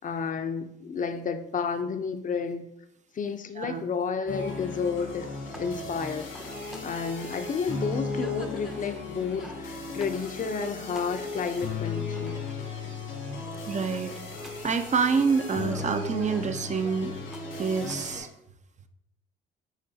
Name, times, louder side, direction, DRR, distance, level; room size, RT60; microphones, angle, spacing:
voice 1, 0.0-2.6 3.1-5.3 5.5-6.2 6.8-12.4, left 5 dB, 40° left, 7 dB, 0.7 m, -31 dB
sound 1, 4.3-18.2, left 3 dB, 90° left, 2.3 m, -36 dB
sound 2, 5.0-18.3, equal, ahead, 0.7 m, -47 dB
voice 2, 13.7-14.1 14.6-17.1 17.6-18.3, right 5 dB, 35° right, 9 dB, 0.7 m, -27 dB
11.0 x 3.7 x 2.8 m, 0.79 s
cardioid pair, 90°, 20 cm